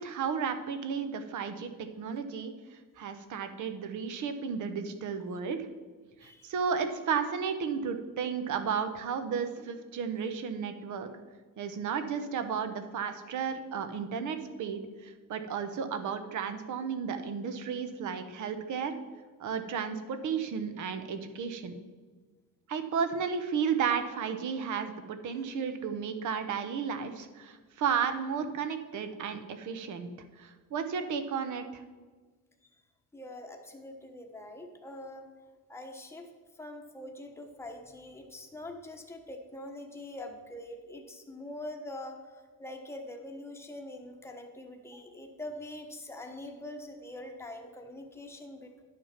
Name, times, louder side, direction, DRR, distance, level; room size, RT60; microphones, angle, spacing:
voice 1, 0.0-2.5 3.0-5.6 6.2-11.1 11.6-19.0 19.4-21.7 22.7-30.1 30.4-31.8, right 6 dB, 60° right, 8 dB, 1.0 m, -33 dB
voice 2, 33.1-35.2 35.7-36.3 36.6-42.2 42.6-48.8, left 1 dB, 5° left, 2 dB, 1.0 m, -44 dB
10.5 x 6.4 x 5.8 m, 1.4 s
cardioid pair, 165°, 34 cm